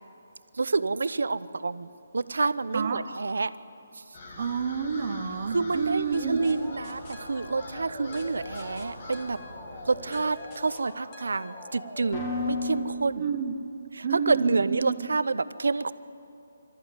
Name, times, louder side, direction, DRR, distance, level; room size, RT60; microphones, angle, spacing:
voice 1, 0.6-3.5 5.5-9.4 9.9-13.2 14.0-15.9, right 3 dB, 90° right, 14 dB, 0.8 m, -28 dB
voice 2, 2.7-3.0 4.4-6.4 13.1-13.6 14.0-15.1, right 6 dB, 35° right, 6 dB, 1.0 m, -29 dB
sound 1, 4.1-10.3, left 2 dB, 40° left, 2.5 m, -45 dB
sound 2, 6.1-13.9, left 1 dB, 20° left, 2.6 m, -38 dB
25.5 x 14.0 x 9.7 m, 2.9 s
hypercardioid pair, 170°, 0 cm